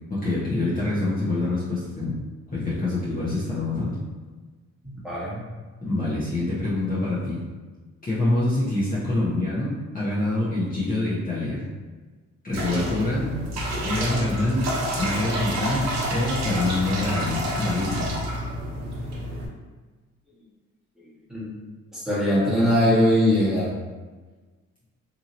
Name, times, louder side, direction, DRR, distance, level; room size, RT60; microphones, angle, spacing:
voice 1, 0.1-2.2 2.5-4.0 5.8-7.4 8.0-11.6 12.4-13.4 13.8-18.1, left 2 dB, 30° left, -9 dB, 0.9 m, -26 dB
voice 2, 4.8-5.4 21.3-21.5 21.9-23.7, left 1 dB, ahead, -9 dB, 1.3 m, -21 dB
sound 1, 12.5-19.5, equal, 65° right, 0.8 m, -29 dB
2.9 x 2.7 x 2.6 m, 1.3 s
cardioid pair, 90°, 30 cm